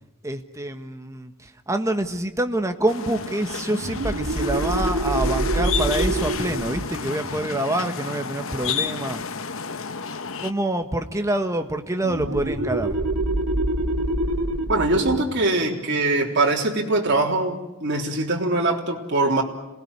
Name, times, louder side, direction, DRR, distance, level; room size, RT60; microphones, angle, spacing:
voice 1, 0.2-9.2 10.4-13.0, right 1 dB, 15° right, 6 dB, 1.5 m, -26 dB
sound 1, 2.9-10.5, left 6 dB, 65° left, 1.0 m, -31 dB
sound 2, 3.7-9.0 12.0-17.3, right 1 dB, 85° right, 2.4 m, -27 dB
voice 2, 14.7-19.4, right 2 dB, 55° right, -1 dB, 3.6 m, -22 dB
27.0 x 19.5 x 9.7 m, 1.0 s
head